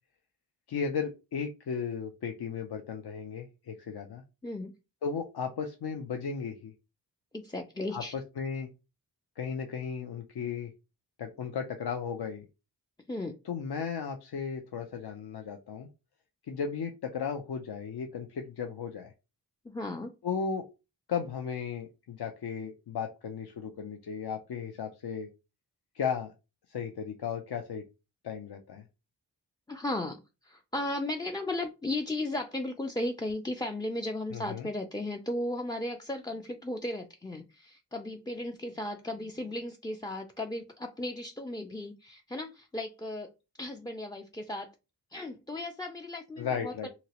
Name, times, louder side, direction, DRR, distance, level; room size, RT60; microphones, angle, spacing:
voice 1, 0.7-4.2 5.0-6.7 7.9-8.7 9.4-10.7 11.2-12.5 13.4-15.9 16.5-19.1 20.2-20.7 21.1-25.3 25.9-26.3 26.7-27.8 28.2-28.8 34.3-34.7 46.4-46.9, left 6 dB, 65° left, 5 dB, 0.5 m, -35 dB
voice 2, 7.3-8.1 13.1-13.4 19.6-20.1 29.7-43.3 43.6-44.7 45.1-46.9, left 1 dB, 10° left, 3 dB, 0.3 m, -35 dB
2.9 x 2.8 x 2.8 m, 0.28 s
cardioid pair, 50°, 42 cm